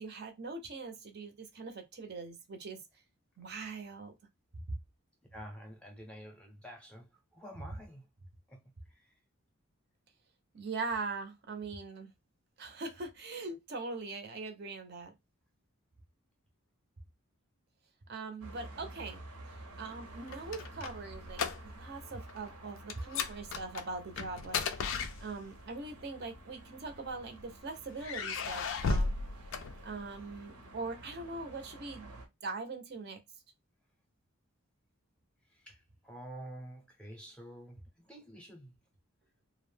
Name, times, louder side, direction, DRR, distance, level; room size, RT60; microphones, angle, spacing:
voice 1, 0.0-2.8 3.4-4.1 10.5-12.1 12.6-15.1 18.1-19.2 19.8-24.6 25.2-29.2 29.8-33.2, right 3 dB, 50° right, 0.5 m, -41 dB
voice 2, 5.3-8.1 8.5-8.6 8.9-9.2 35.5-37.8 38.0-38.8, equal, 5° left, 0.5 m, -49 dB
sound 1, 18.4-32.3, right 1 dB, 90° right, 0.7 m, -51 dB
sound 2, 20.1-22.0 22.2-22.5 22.9-25.7 26.6-27.4 28.0-30.3, left 4 dB, 60° left, 0.3 m, -35 dB
2.4 x 2.0 x 3.2 m
head